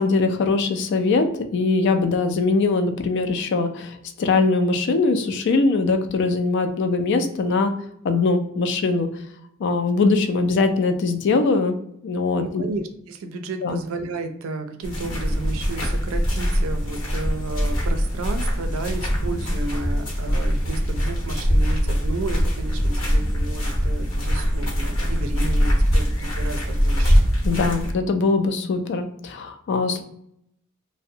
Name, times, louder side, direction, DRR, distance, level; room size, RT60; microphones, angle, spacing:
voice 1, 0.0-7.7 8.0-9.1 9.6-11.7 12.0-12.6 13.6-13.8 27.4-30.0, left 3 dB, 55° left, 8 dB, 0.3 m, -21 dB
voice 2, 12.4-27.3, right 3 dB, 75° right, 7 dB, 0.4 m, -33 dB
sound 1, 14.8-27.9, equal, 80° left, 0.9 m, -22 dB
2.6 x 2.0 x 2.6 m, 0.73 s
head